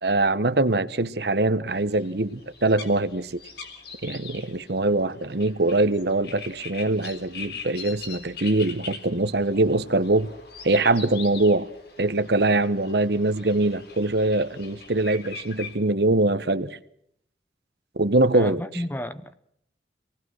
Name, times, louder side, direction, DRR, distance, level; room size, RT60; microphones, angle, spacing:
voice 1, 0.0-3.4 4.0-10.3 10.6-11.7 12.0-16.8 18.0-18.6, right 2 dB, 65° right, 1.1 m, -23 dB
sound 1, 1.7-15.8, left 5 dB, 60° left, 3.6 m, -42 dB
voice 2, 18.3-19.3, left 1 dB, 10° left, 0.8 m, -32 dB
26.5 x 19.0 x 6.3 m
head